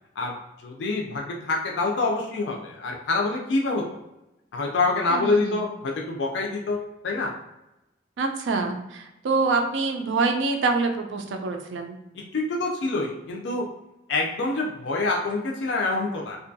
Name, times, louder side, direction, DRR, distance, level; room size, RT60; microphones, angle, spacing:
voice 1, 0.6-4.0 4.5-7.3 12.1-13.7 14.1-16.4, left 3 dB, 70° left, 0 dB, 0.4 m, -26 dB
voice 2, 5.1-5.6 8.2-12.0, right 3 dB, 75° right, 4 dB, 0.4 m, -26 dB
2.6 x 2.2 x 2.6 m, 0.92 s
head